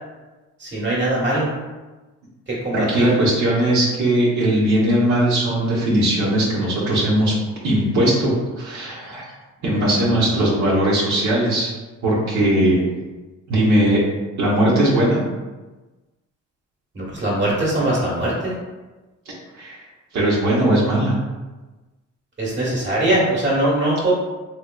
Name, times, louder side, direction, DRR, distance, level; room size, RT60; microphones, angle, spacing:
voice 1, 0.6-1.5 2.5-3.1 10.0-10.4 16.9-18.5 22.4-24.1, right 1 dB, 40° right, -5 dB, 1.3 m, -21 dB
voice 2, 2.7-7.3 7.6-9.3 9.6-11.7 12.0-12.8 13.5-14.0 14.4-15.2 19.5-19.8 20.1-21.1, right 1 dB, 75° right, -7 dB, 1.1 m, -19 dB
3.1 x 3.1 x 2.3 m, 1.2 s
cardioid pair, 90°, 30 cm